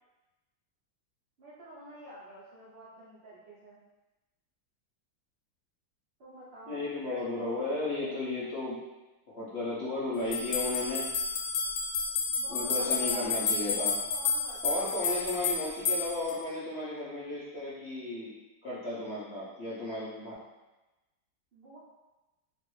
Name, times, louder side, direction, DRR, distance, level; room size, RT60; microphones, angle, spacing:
voice 1, 1.4-3.8 6.2-6.9 7.1-7.8 12.4-13.4 13.7-15.0 15.6-15.9 21.5-21.8, equal, 80° right, -9 dB, 0.5 m, -48 dB
voice 2, 6.7-8.8 9.3-11.0 12.5-13.9 14.6-18.3 18.6-20.3, left 2 dB, 60° left, -9 dB, 0.7 m, -34 dB
sound 1, 10.3-16.4, left 5 dB, 85° left, 1.3 m, -30 dB
3.1 x 2.5 x 3.0 m, 1.1 s
omnidirectional pair, 2.1 m